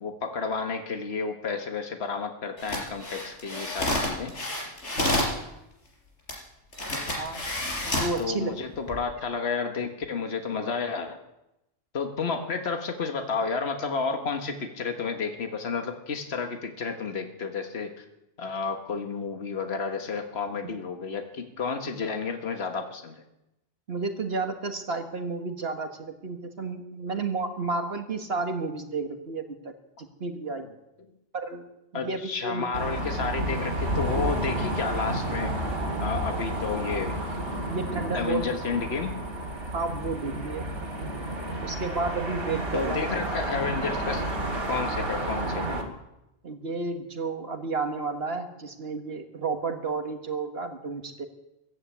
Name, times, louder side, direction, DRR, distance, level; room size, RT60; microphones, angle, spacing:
voice 1, 0.0-4.4 8.2-11.2 11.9-18.0 18.4-23.2 31.9-35.5 36.0-37.2 38.1-39.2 42.7-44.2 44.7-45.8, left 5 dB, 60° left, 5 dB, 1.7 m, -31 dB
sound 1, 2.6-5.4 6.3-6.4 6.7-8.2 8.7-9.0, left 1 dB, 75° left, 4.7 m, -29 dB
voice 2, 8.0-8.5 23.9-29.7 30.2-30.7 31.3-31.6 31.9-32.6 37.7-38.5 39.7-40.7 41.5-43.1 46.4-51.3, right 3 dB, 55° right, 5 dB, 1.7 m, -31 dB
sound 2, 32.7-45.8, right 1 dB, 90° right, 2.6 m, -31 dB
15.5 x 11.0 x 8.2 m, 0.90 s
omnidirectional pair, 1.2 m